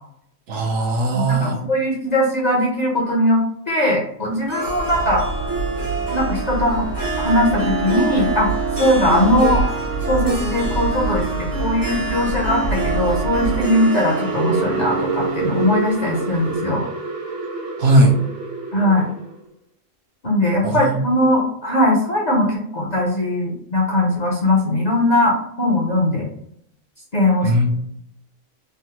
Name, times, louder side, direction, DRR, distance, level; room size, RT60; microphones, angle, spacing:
voice 1, 0.5-1.6 17.8-18.2 20.6-21.0 27.4-27.7, right 1 dB, 65° right, 0 dB, 1.0 m, -18 dB
voice 2, 1.1-5.2 6.1-8.5 8.8-9.6 10.1-16.8 18.7-19.1 20.2-26.3 27.1-27.5, left 1 dB, 45° left, -3 dB, 0.6 m, -20 dB
sound 1, 4.3-19.4, right 4 dB, 85° right, 1.3 m, -31 dB
Harp, 4.5-16.7, right 3 dB, 20° right, 0.6 m, -27 dB
sound 2, 4.6-13.6, right 3 dB, 80° left, 1.2 m, -27 dB
3.3 x 2.0 x 2.9 m, 0.71 s
omnidirectional pair, 1.4 m